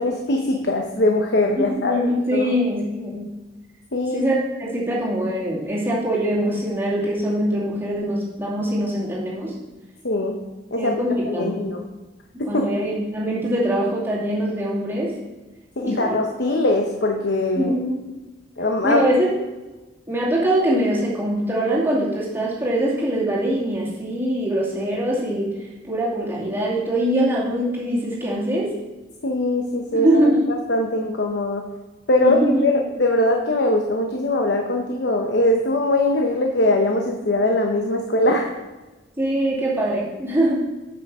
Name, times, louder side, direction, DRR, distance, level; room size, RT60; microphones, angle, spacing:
voice 1, 0.0-2.0 2.3-2.5 3.9-4.2 10.0-10.4 10.7-11.0 11.2-11.8 12.4-12.5 15.8-17.8 18.6-19.1 29.2-30.2 30.7-31.6 32.1-38.5, left 1 dB, 60° left, 2 dB, 0.9 m, -21 dB
voice 2, 1.6-3.3 4.1-9.5 10.8-11.7 12.5-15.2 15.8-16.2 17.6-18.0 18.8-19.3 20.1-25.6 25.8-28.7 29.9-30.5 32.2-32.7 39.2-40.5, right 1 dB, 10° right, -6 dB, 2.5 m, -23 dB
8.4 x 6.1 x 6.1 m, 1.1 s
head